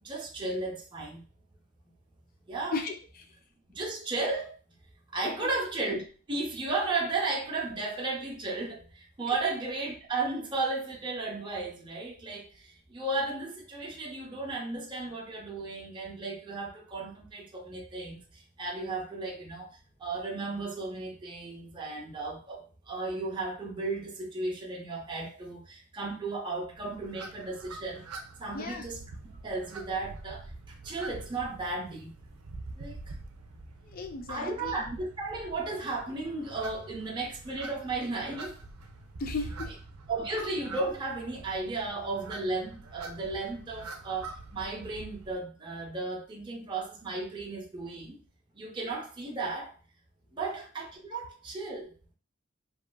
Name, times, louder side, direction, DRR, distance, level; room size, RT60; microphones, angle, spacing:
voice 1, 0.0-1.2 2.5-2.7 3.7-4.5 5.1-6.0 6.3-28.0 28.4-29.0 29.4-32.1 32.8-33.2 34.3-38.5 40.1-48.2 48.5-49.7 50.3-51.9, right 3 dB, 20° right, -2 dB, 0.5 m, -34 dB
voice 2, 2.7-3.3 5.4-5.5 28.5-28.8 33.8-34.9 39.2-39.7, left 3 dB, 40° left, 5 dB, 0.4 m, -36 dB
sound 1, 26.8-45.4, right 3 dB, 85° right, 0.4 m, -45 dB
2.9 x 2.4 x 2.2 m, 0.37 s
head